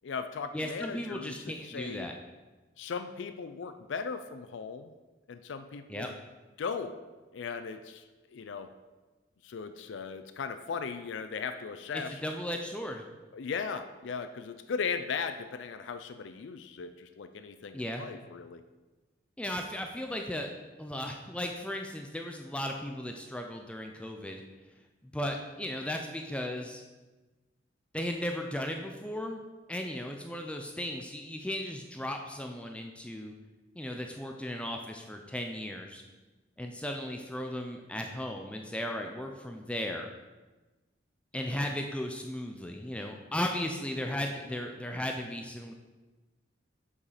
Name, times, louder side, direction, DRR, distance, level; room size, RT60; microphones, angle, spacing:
voice 1, 0.0-2.1 2.8-4.9 5.3-6.2 6.6-7.0 7.3-8.0 8.3-8.7 9.4-12.2 13.3-18.6, left 5 dB, 70° left, 9 dB, 0.4 m, -37 dB
voice 2, 0.5-2.1 5.9-6.1 11.9-13.0 17.7-18.0 19.4-20.5 20.8-24.4 25.0-26.8 27.9-29.4 29.7-33.3 33.8-36.0 36.6-40.1 41.3-45.7, left 1 dB, 5° left, 3 dB, 0.4 m, -36 dB
7.0 x 4.9 x 4.9 m, 1.2 s
head